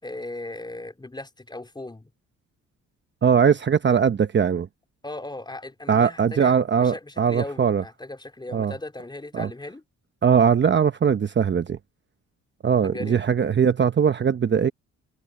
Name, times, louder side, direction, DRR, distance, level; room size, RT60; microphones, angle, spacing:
voice 1, 0.0-2.1 5.0-9.8 12.8-13.2, left 2 dB, 15° left, 3.5 m, -37 dB
voice 2, 3.2-4.7 5.9-7.8 8.5-8.7 9.3-9.5 10.2-11.8 12.6-14.7, right 7 dB, 35° right, 1.0 m, -20 dB
cardioid pair, 90°, 30 cm